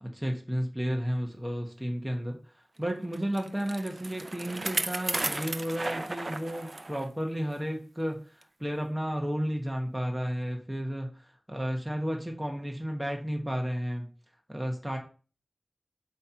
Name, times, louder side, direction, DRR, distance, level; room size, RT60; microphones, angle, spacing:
voice 1, 0.0-2.4 2.8-8.2 8.6-11.1 11.5-14.1 14.5-15.0, equal, 10° right, 1 dB, 1.0 m, -32 dB
Bicycle, 3.1-7.1 7.5-7.6 8.4-8.5, right 2 dB, 40° right, 0.5 m, -34 dB
7.9 x 2.9 x 5.6 m, 0.37 s
wide cardioid pair, 75°, 0 cm